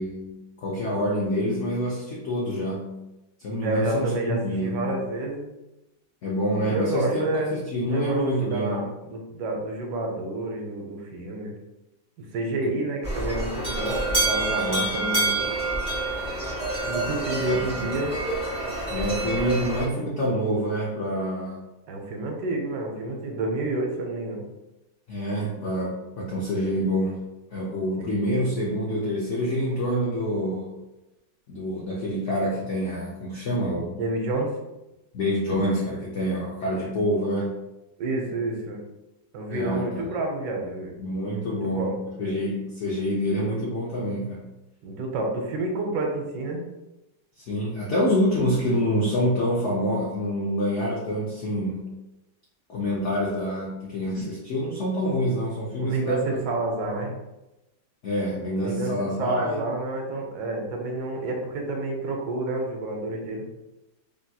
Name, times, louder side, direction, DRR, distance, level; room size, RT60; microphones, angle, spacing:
voice 1, 0.0-3.0 3.4-5.0 6.2-7.2 7.5-8.9 12.6-12.8 14.6-15.0 17.4-17.8 18.9-21.6 25.1-27.2 27.5-30.7 31.5-33.9 35.1-37.5 39.5-40.0 41.0-44.4 47.4-51.9 52.7-56.4 58.0-59.6, equal, 75° left, -4 dB, 0.6 m, -27 dB
voice 2, 3.6-5.5 6.6-7.6 7.9-11.6 12.2-15.4 16.9-18.1 21.9-24.5 28.0-28.1 33.9-34.5 38.0-38.8 39.3-41.0 41.5-42.0 44.8-46.6 55.8-57.2 58.6-63.5, right 2 dB, 80° right, 2 dB, 1.2 m, -29 dB
sound 1, 13.0-19.8, right 2 dB, 5° right, 1.0 m, -27 dB
3.3 x 2.7 x 2.2 m, 0.98 s
omnidirectional pair, 1.9 m